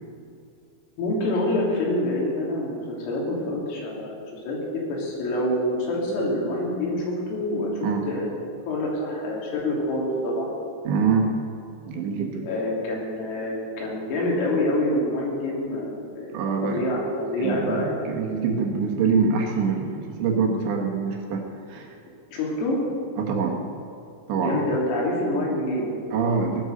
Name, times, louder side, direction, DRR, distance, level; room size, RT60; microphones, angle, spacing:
voice 1, 1.0-4.2 4.5-8.4 8.7-10.5 12.4-16.3 16.6-18.2 22.3-22.8 24.3-26.1, left 1 dB, 80° left, -3 dB, 5.8 m, -26 dB
voice 2, 10.9-11.4 11.9-12.5 16.3-16.9 17.4-22.0 23.2-23.6 24.3-24.6 26.1-26.6, right 5 dB, 70° right, 1 dB, 3.3 m, -25 dB
17.0 x 12.0 x 6.6 m, 2.3 s
omnidirectional pair, 5.9 m